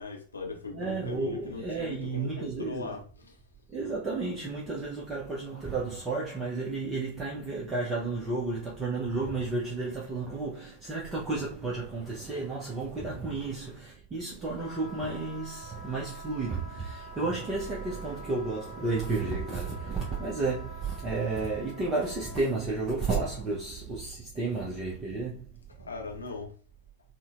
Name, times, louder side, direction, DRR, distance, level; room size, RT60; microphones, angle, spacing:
voice 1, 0.0-3.4 25.8-26.6, left 4 dB, 75° left, 0.8 m, -40 dB
voice 2, 0.7-2.9 3.7-25.4, right 3 dB, 20° right, 0.8 m, -32 dB
Wind instrument woodwind instrument, 14.5-22.4, equal, 20° left, 0.6 m, -47 dB
4.0 x 2.2 x 2.4 m
figure-of-eight pair, 90°, 0 cm